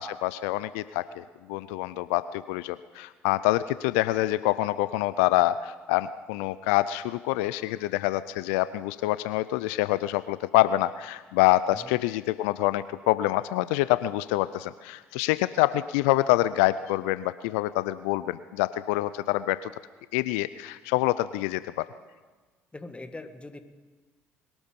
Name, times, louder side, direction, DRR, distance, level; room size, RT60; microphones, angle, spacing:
voice 1, 0.0-19.7 20.1-21.9, left 16 dB, 75° left, 16 dB, 0.4 m, -26 dB
voice 2, 22.7-23.6, left 2 dB, 15° left, 9 dB, 1.6 m, -41 dB
21.5 x 12.5 x 5.3 m, 1.4 s
hypercardioid pair, 55°, 7 cm